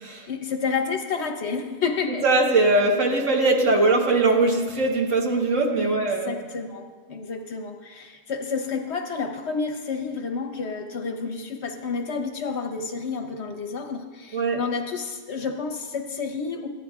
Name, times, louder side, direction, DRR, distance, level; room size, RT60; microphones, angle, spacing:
voice 1, 0.3-2.2 5.8-6.0 6.2-16.7, left 5 dB, 60° left, 5 dB, 0.8 m, -30 dB
voice 2, 2.2-6.3 14.3-14.6, right 2 dB, 55° right, 1 dB, 1.4 m, -21 dB
14.5 x 9.8 x 2.3 m, 1.4 s
omnidirectional pair, 1.6 m